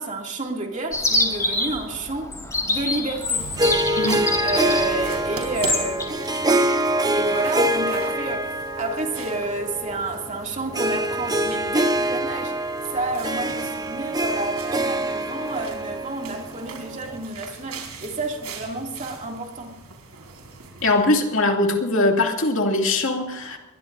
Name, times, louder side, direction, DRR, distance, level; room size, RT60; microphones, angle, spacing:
voice 1, 0.0-2.4 2.7-3.5 4.4-6.6 7.1-12.6 12.9-19.8, right 2 dB, 35° right, 2.6 m, -30 dB
Chirp tweet, 0.9-6.0, left 2 dB, 15° left, 3.1 m, -26 dB
sound 1, 3.4-21.1, right 3 dB, 85° right, 4.2 m, -40 dB
Harp, 3.6-17.2, right 1 dB, 15° right, 0.8 m, -25 dB
voice 2, 20.8-23.6, left 2 dB, 60° left, 2.5 m, -21 dB
22.0 x 21.5 x 2.7 m
head